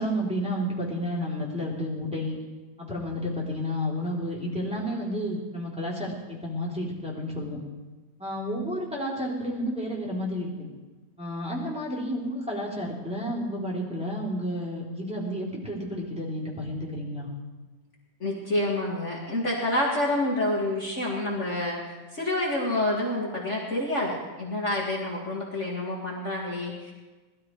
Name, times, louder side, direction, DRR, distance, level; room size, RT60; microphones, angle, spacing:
voice 1, 0.0-2.4 2.8-7.6 8.2-10.5 11.2-17.3, equal, 5° right, -6 dB, 3.6 m, -31 dB
voice 2, 18.2-26.9, left 1 dB, 45° left, -3 dB, 2.5 m, -28 dB
19.5 x 13.5 x 4.8 m, 1.2 s
omnidirectional pair, 1.8 m